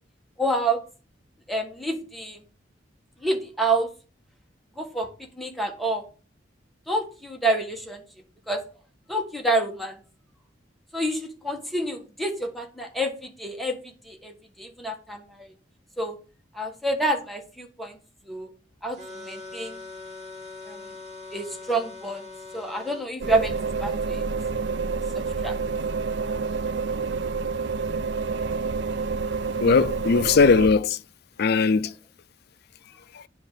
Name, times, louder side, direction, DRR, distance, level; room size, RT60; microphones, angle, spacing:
voice 1, 0.4-0.8 1.5-2.4 3.2-3.9 4.8-5.1 5.4-6.0 6.9-8.0 8.5-8.6 9.1-9.9 10.9-13.8 14.1-14.3 14.6-15.2 16.0-16.2 16.5-17.9 18.3-18.5 18.8-19.8 20.7-20.8 21.3-22.2 22.5-23.5 23.8-24.2 25.4-25.5, right 2 dB, ahead, 1.3 m, -27 dB
sound 1, 19.0-23.1, left 3 dB, 35° right, 2.0 m, -41 dB
sound 2, 23.2-30.7, right 4 dB, 65° right, 0.5 m, -28 dB
voice 2, 29.6-31.0 31.4-31.9 33.1-33.2, left 4 dB, 60° left, 0.4 m, -19 dB
9.7 x 3.6 x 6.7 m
head